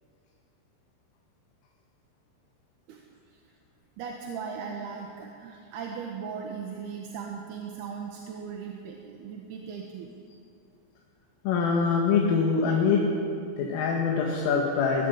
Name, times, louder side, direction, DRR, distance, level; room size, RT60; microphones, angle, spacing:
voice 1, 4.0-10.1, right 6 dB, 65° right, 0 dB, 3.0 m, -38 dB
voice 2, 11.5-13.0 13.6-15.1, left 5 dB, 85° left, -2 dB, 4.4 m, -24 dB
20.0 x 14.0 x 10.0 m, 2.5 s
omnidirectional pair, 5.7 m